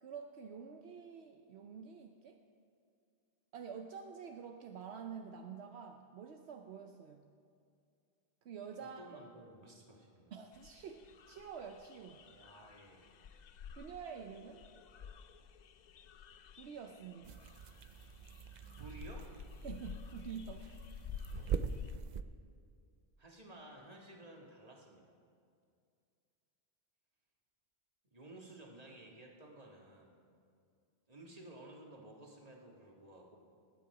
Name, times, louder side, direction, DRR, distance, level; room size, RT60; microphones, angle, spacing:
voice 1, 0.0-2.4 3.5-7.3 8.4-9.2 10.3-12.3 13.8-14.7 16.5-17.4 19.6-20.7, right 7 dB, 75° right, 5 dB, 0.9 m, -48 dB
voice 2, 8.8-10.3 12.3-13.2 18.8-19.3 23.2-25.2 28.1-30.2 31.1-33.4, right 1 dB, 35° right, -1 dB, 1.8 m, -54 dB
sound 1, 10.5-22.0, left 7 dB, 55° left, 0.5 m, -51 dB
sound 2, 17.2-22.2, right 7 dB, 55° right, 0.5 m, -43 dB
19.0 x 8.8 x 4.8 m, 2.3 s
omnidirectional pair, 1.1 m